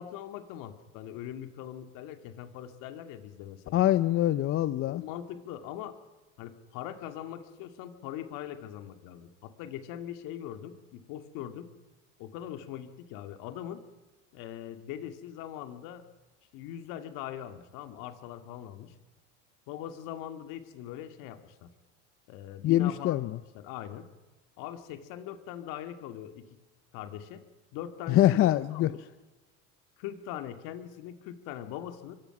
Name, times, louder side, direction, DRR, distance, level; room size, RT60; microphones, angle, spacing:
voice 1, 0.0-3.8 4.9-6.0 6.4-11.7 12.2-13.8 14.3-16.0 16.5-18.9 19.7-21.7 22.3-24.1 24.6-26.6 26.9-27.4 27.7-29.1 30.0-32.2, left 11 dB, 65° left, 8 dB, 2.4 m, -41 dB
voice 2, 3.7-5.0 22.6-23.4 28.1-28.9, left 13 dB, 40° left, 14 dB, 0.6 m, -24 dB
24.0 x 23.0 x 6.0 m, 1.2 s
supercardioid pair, 120°, 35 cm